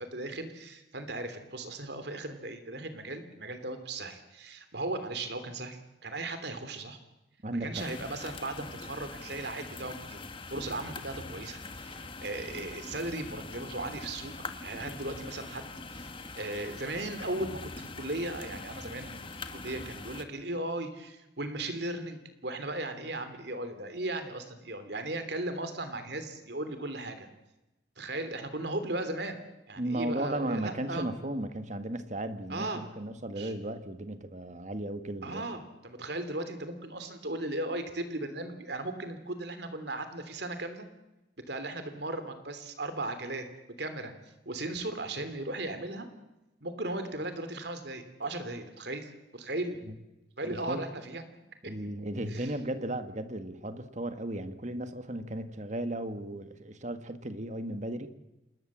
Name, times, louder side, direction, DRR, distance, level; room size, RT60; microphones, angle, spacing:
voice 1, 0.1-7.0 7.6-10.2 10.5-14.3 14.6-16.1 16.4-19.2 19.5-27.3 28.0-31.1 32.5-32.9 33.4-33.5 35.2-40.9 41.5-43.5 43.8-44.1 44.4-46.1 46.6-49.9 50.4-51.3 52.3-52.5, right 2 dB, 65° right, 9 dB, 3.1 m, -37 dB
voice 2, 7.4-7.9 29.8-35.4 49.9-50.0 50.4-50.8 51.7-58.1, right 1 dB, 40° right, 9 dB, 1.8 m, -35 dB
sound 1, 7.7-20.2, left 3 dB, 30° left, 1.7 m, -43 dB
27.5 x 20.5 x 7.6 m, 0.97 s
head